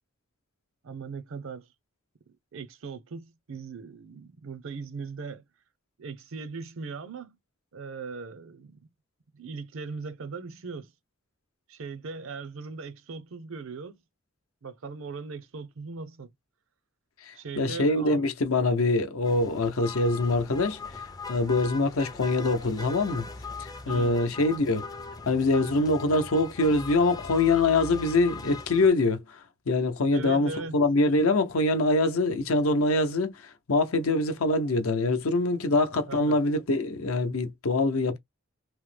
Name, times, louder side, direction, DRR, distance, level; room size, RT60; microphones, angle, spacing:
voice 1, 0.8-1.7 2.5-5.4 6.0-7.4 7.7-8.8 9.3-10.9 11.7-14.0 14.6-16.3 17.3-18.2 23.9-24.2 30.1-30.8 36.1-36.4, right 4 dB, 65° right, 0.5 m, -39 dB
voice 2, 17.2-23.2 23.6-24.9 25.3-38.2, left 2 dB, 75° left, 0.7 m, -24 dB
sound 1, 19.2-28.9, left 4 dB, 20° left, 0.4 m, -40 dB
3.0 x 2.0 x 3.2 m
head